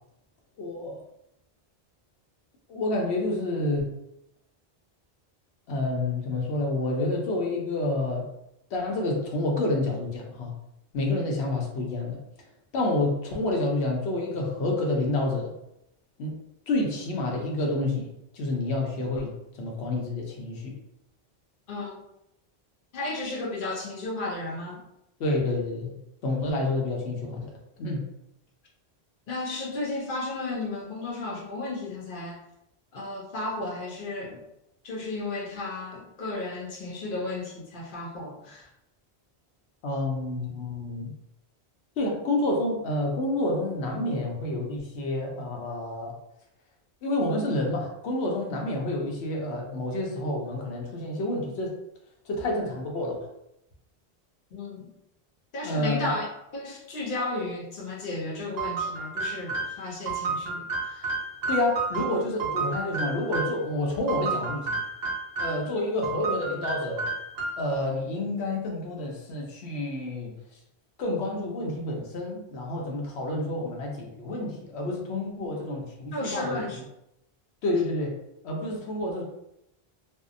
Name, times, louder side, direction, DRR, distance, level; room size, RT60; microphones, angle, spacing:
voice 1, 0.6-1.0 2.7-3.9 5.7-8.3 8.7-10.5 10.9-12.2 12.7-15.5 16.2-16.4 16.7-18.1 18.3-20.7 25.2-25.9 26.2-27.5 27.8-28.0 39.8-41.1 42.0-46.1 47.0-51.7 52.3-53.3 55.6-56.1 61.5-64.8 65.4-67.0 67.6-70.3 71.0-76.6 77.6-78.1 78.4-79.2, left 2 dB, 85° left, 0 dB, 0.9 m, -29 dB
voice 2, 21.7-22.0 22.9-24.8 29.3-32.4 32.9-34.4 34.8-38.7 54.5-54.9 55.5-56.3 56.5-61.1 75.4-75.5 76.1-76.8, left 2 dB, 60° left, -1 dB, 0.7 m, -34 dB
sound 1, 58.6-63.6 64.1-65.7 66.0-67.8, right 3 dB, 70° right, 0.8 m, -31 dB
2.6 x 2.0 x 2.5 m, 0.82 s
omnidirectional pair, 1.1 m